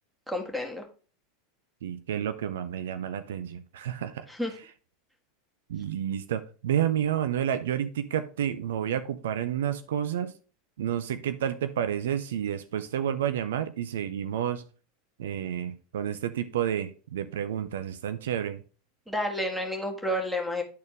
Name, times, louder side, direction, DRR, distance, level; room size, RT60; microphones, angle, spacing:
voice 1, 0.3-0.8 4.3-4.5 19.1-20.6, left 1 dB, 5° right, 1.7 m, -30 dB
voice 2, 1.8-4.2 5.7-10.3 10.8-14.6 15.2-18.6, right 9 dB, 75° right, 0.5 m, -30 dB
10.5 x 4.2 x 3.4 m
hypercardioid pair, 90°, 0 cm